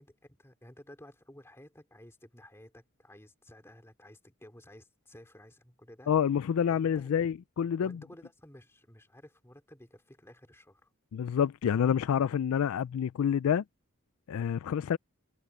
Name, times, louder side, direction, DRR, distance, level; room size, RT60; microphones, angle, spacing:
voice 1, 0.0-6.1 6.7-7.1 7.8-10.9, left 1 dB, 10° left, 2.7 m, -54 dB
voice 2, 6.1-8.0 11.1-13.6 14.3-15.0, left 8 dB, 70° left, 0.3 m, -28 dB
head